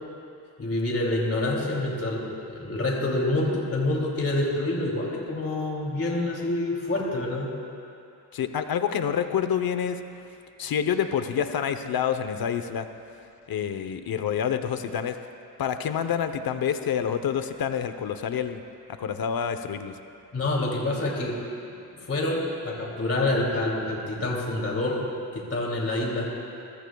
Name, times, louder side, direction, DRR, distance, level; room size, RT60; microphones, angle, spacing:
voice 1, 0.6-7.5 20.3-21.3 22.0-25.0 25.3-26.3, left 2 dB, 35° left, -2 dB, 2.8 m, -27 dB
voice 2, 8.3-10.0 10.6-12.9 13.5-15.2 15.6-18.6 18.9-20.0, left 8 dB, 65° left, 9 dB, 0.9 m, -27 dB
27.0 x 15.0 x 2.3 m, 2.6 s
cardioid pair, 80°, 39 cm